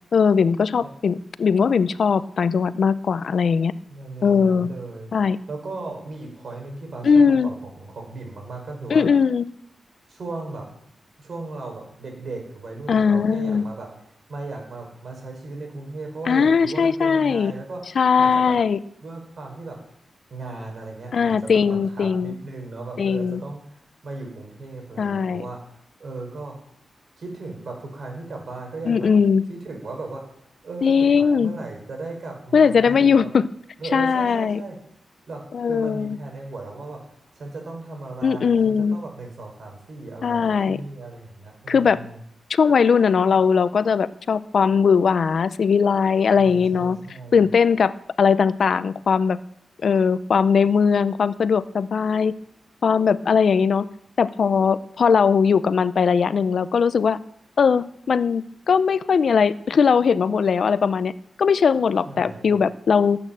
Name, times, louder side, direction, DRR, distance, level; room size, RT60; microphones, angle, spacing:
voice 1, 0.1-3.7 4.2-4.7 5.1-5.4 7.0-7.5 8.9-9.4 12.9-13.6 16.3-17.5 18.0-18.8 21.1-22.3 23.0-23.4 25.0-25.4 28.9-29.4 30.8-31.5 32.5-33.5 33.9-34.6 35.5-36.2 38.2-39.0 40.2-40.8 41.7-42.0 42.5-47.0 47.3-47.9 48.2-49.4 49.8-52.3 52.8-53.9 54.2-57.2 57.6-61.1 61.4-63.2, left 6 dB, 65° left, 16 dB, 0.6 m, -19 dB
voice 2, 3.9-5.1 5.5-9.0 10.1-10.7 11.2-13.9 14.3-17.8 18.2-18.6 19.0-19.8 20.3-23.6 24.0-25.6 26.0-26.5 27.2-29.1 29.5-30.2 30.6-33.3 33.8-34.8 35.3-37.0 37.3-40.4 40.7-42.2 46.4-47.4 62.1-62.6, right 3 dB, 65° right, 1 dB, 6.2 m, -36 dB
16.5 x 8.8 x 7.6 m, 0.71 s
cardioid pair, 75°, 0 cm